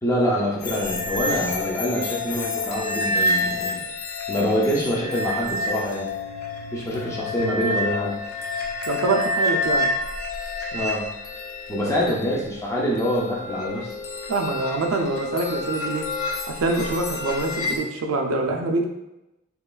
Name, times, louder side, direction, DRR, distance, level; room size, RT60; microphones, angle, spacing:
voice 1, 0.0-3.8 4.3-6.1 6.7-8.1 10.7-11.0 11.7-14.0, equal, 15° left, -4 dB, 0.4 m, -25 dB
sound 1, 0.6-17.8, left 2 dB, 80° left, 0.4 m, -29 dB
voice 2, 8.9-9.9 14.3-16.0 16.5-18.9, right 3 dB, 65° right, 3 dB, 0.4 m, -25 dB
2.9 x 2.3 x 2.3 m, 0.93 s
head